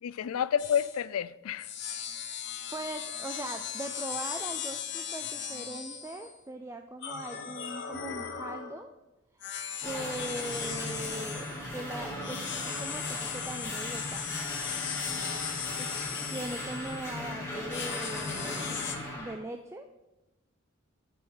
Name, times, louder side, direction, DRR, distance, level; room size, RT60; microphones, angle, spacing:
voice 1, 0.0-1.9, left 8 dB, 90° left, 0.4 m, -30 dB
sound 1, 0.6-1.0 1.6-6.3 7.0-8.9 9.4-11.6 12.2-17.1 17.7-19.0, left 8 dB, 55° left, 0.8 m, -38 dB
voice 2, 2.5-8.9 9.3-14.3 15.8-18.8 19.1-19.9, right 2 dB, 15° right, 0.4 m, -41 dB
sound 2, 9.8-19.3, left 1 dB, 10° left, 2.0 m, -37 dB
6.5 x 5.5 x 6.6 m
head